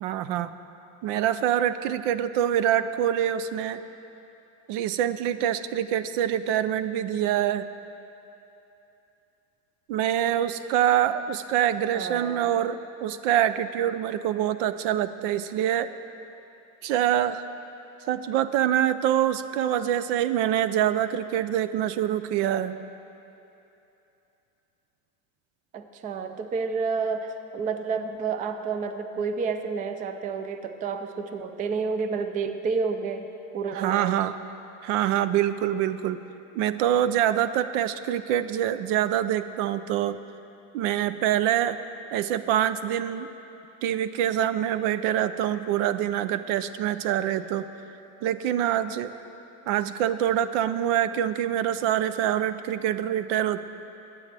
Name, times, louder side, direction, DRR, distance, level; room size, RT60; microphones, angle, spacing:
voice 1, 0.0-0.5 1.0-3.8 4.7-7.7 9.9-15.9 16.8-17.4 18.1-22.8 33.7-34.3 34.8-36.2 36.5-40.2 40.7-41.8 42.1-43.3 43.8-47.7 48.2-49.1 49.7-53.6, right 11 dB, 75° right, 13 dB, 0.6 m, -25 dB
voice 2, 11.9-12.6 25.7-33.3 33.5-34.2, right 5 dB, 20° right, 8 dB, 0.4 m, -30 dB
21.5 x 8.5 x 3.4 m, 2.9 s
cardioid pair, 155°, 37 cm